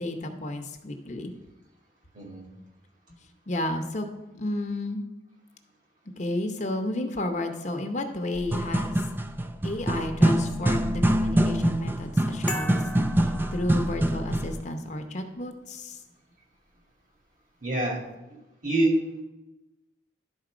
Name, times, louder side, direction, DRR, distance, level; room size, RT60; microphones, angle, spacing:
voice 1, 0.0-1.3 3.5-4.1 4.3-5.0 6.2-9.0 9.6-12.8 13.2-16.0, left 1 dB, 40° left, 5 dB, 0.8 m, -32 dB
voice 2, 2.1-2.5 17.6-18.0 18.6-19.2, right 1 dB, 45° right, 0 dB, 1.9 m, -26 dB
sound 1, 8.4-14.6, right 1 dB, 10° right, 0.4 m, -25 dB
sound 2, 12.5-14.4, equal, 10° left, 0.8 m, -37 dB
11.5 x 4.1 x 5.0 m, 1.0 s
head